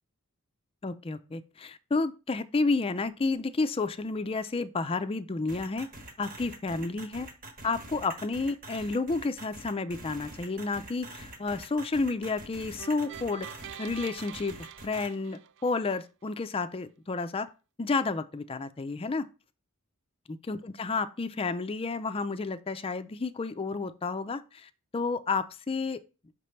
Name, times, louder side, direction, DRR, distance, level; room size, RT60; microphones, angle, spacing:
voice 1, 0.8-5.9 6.2-7.3 7.6-13.5 13.8-14.6 14.8-17.5 17.8-19.3 20.5-26.0, left 3 dB, 25° left, 0.4 m, -31 dB
sound 1, 5.5-15.1, right 2 dB, 40° right, 1.1 m, -45 dB
sound 2, 12.8-16.0, right 9 dB, 60° right, 0.4 m, -46 dB
5.9 x 3.2 x 5.6 m
head